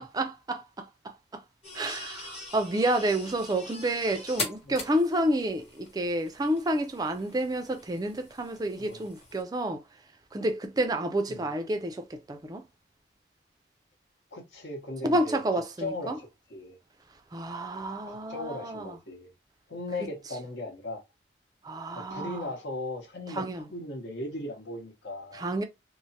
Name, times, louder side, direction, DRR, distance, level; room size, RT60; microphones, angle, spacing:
voice 1, 0.0-1.4 1.7-9.8 10.3-12.6 15.0-16.2 17.3-18.9 21.6-22.5 23.3-23.7 25.3-25.6, right 1 dB, 20° right, 0.4 m, -30 dB
sound 1, 1.6-9.4, left 3 dB, 35° left, 1.1 m, -42 dB
voice 2, 14.3-16.8 18.1-19.3 19.7-21.0 21.9-25.4, left 2 dB, 70° left, 0.9 m, -38 dB
3.1 x 2.0 x 2.7 m
head